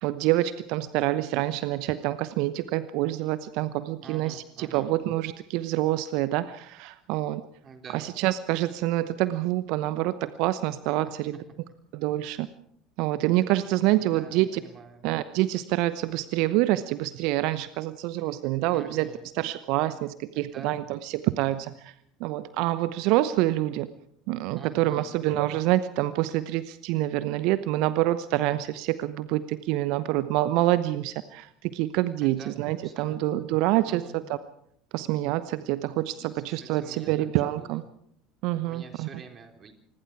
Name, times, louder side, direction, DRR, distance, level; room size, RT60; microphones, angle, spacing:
voice 1, 0.0-7.4 7.9-11.4 11.9-12.5 13.0-14.6 15.0-19.1 19.4-21.9 22.2-23.9 24.3-34.2 34.9-37.8 38.4-39.1, right 15 dB, 60° right, 14 dB, 0.9 m, -26 dB
voice 2, 4.0-4.9 7.6-8.1 14.0-15.1 18.7-19.3 20.3-20.8 24.5-25.2 32.2-33.4 33.9-34.2 36.2-37.8 38.5-39.7, right 5 dB, 35° right, 5 dB, 4.0 m, -47 dB
27.5 x 20.5 x 4.8 m, 0.72 s
figure-of-eight pair, 70°, 0 cm